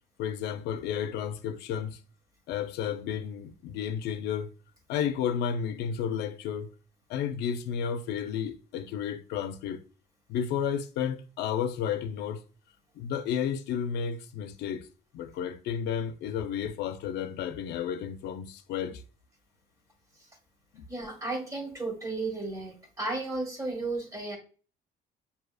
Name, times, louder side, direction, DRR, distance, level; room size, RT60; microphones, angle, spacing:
voice 1, 0.2-2.0 2.5-4.5 4.9-6.7 7.1-9.8 10.3-12.4 13.0-14.9 15.1-19.0 20.7-20.9, left 8 dB, 80° left, 0.5 m, -32 dB
voice 2, 20.9-24.4, right 2 dB, 20° right, 1.3 m, -34 dB
6.1 x 2.7 x 2.3 m
cardioid pair, 110°, 17 cm